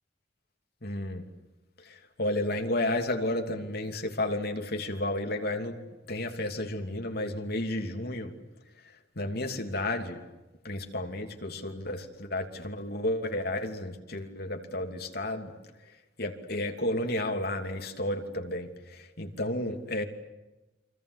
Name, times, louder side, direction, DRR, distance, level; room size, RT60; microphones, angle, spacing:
voice 1, 0.8-1.2 2.2-5.7 6.1-8.3 9.2-10.2 10.6-15.5 16.2-18.7 19.2-20.0, left 1 dB, 55° left, 5 dB, 2.9 m, -32 dB
29.0 x 24.5 x 8.2 m, 1.0 s
head